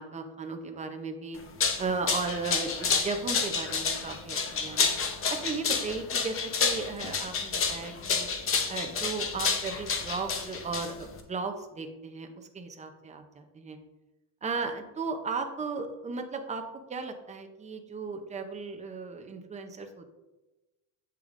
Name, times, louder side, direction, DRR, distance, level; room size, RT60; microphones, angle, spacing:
voice 1, 0.0-1.4 1.8-4.9 5.3-8.3 8.7-13.8 14.4-16.6 16.9-20.1, right 4 dB, 15° right, 5 dB, 0.5 m, -36 dB
sound 1, 1.4-11.2, left 5 dB, 30° left, 0.7 m, -29 dB
8.1 x 6.5 x 2.5 m, 1.1 s
cardioid pair, 140°, 46 cm